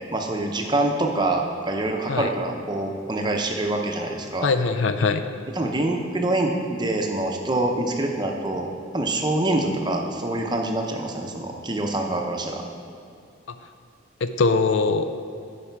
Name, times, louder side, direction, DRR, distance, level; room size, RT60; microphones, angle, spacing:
voice 1, 0.1-4.5 5.5-8.7 8.9-12.6, right 2 dB, 20° right, 2 dB, 0.7 m, -25 dB
voice 2, 4.4-5.2 14.2-15.1, left 4 dB, 75° left, 9 dB, 0.5 m, -21 dB
11.5 x 4.9 x 4.6 m, 2.4 s
head